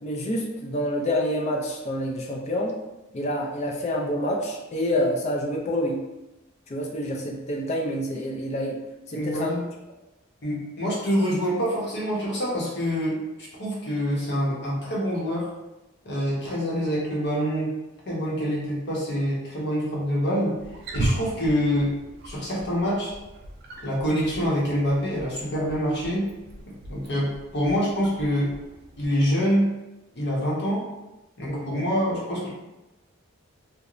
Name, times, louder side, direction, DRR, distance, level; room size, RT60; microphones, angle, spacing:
voice 1, 0.0-2.7 3.1-6.0 6.7-8.8 9.1-9.5 31.5-31.8, equal, 30° left, 0 dB, 0.4 m, -27 dB
voice 2, 9.1-9.6 10.4-15.5 16.0-17.7 18.1-20.6 20.9-22.0 22.2-23.1 23.8-26.3 26.9-28.6 29.0-29.7 30.1-30.9 31.4-32.5, equal, 50° left, -5 dB, 0.8 m, -26 dB
Wild animals, 20.5-29.1, right 2 dB, 45° right, 0.3 m, -36 dB
2.9 x 2.0 x 2.4 m, 1.0 s
head